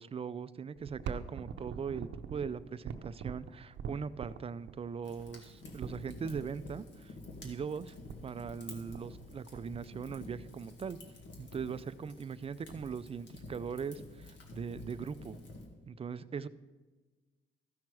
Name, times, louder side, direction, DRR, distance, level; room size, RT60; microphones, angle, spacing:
voice 1, 0.0-7.1 7.4-8.0 8.2-11.0 11.4-15.4 15.9-16.5, right 6 dB, 30° right, 14 dB, 0.4 m, -40 dB
sound 1, 0.8-6.4 7.4-7.5 7.7-7.8 8.1-8.6 8.9-9.3 9.5-10.4 11.0-11.1 11.5-11.8 12.2-12.3 12.4-13.0 13.5-14.3 14.7-14.8 15.7-15.8, right 7 dB, 65° right, 0.7 m, -44 dB
Fire, 5.0-15.7, left 2 dB, 70° left, 1.9 m, -50 dB
14.5 x 6.0 x 4.8 m, 1.3 s
cardioid pair, 90°, 20 cm